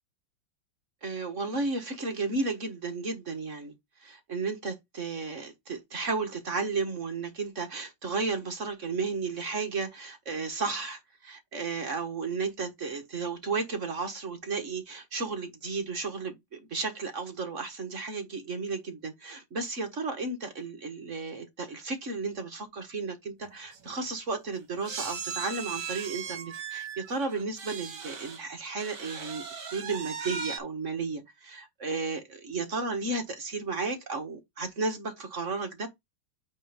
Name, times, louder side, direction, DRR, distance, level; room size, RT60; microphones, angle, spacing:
voice 1, 1.0-3.7 4.0-29.4 29.7-35.9, right 4 dB, 40° right, 1.6 m, -33 dB
sound 1, 23.4-23.5 23.7-23.9 24.9-28.4 28.8-30.6, right 6 dB, 65° right, 2.1 m, -38 dB
8.4 x 3.1 x 5.1 m
omnidirectional pair, 2.1 m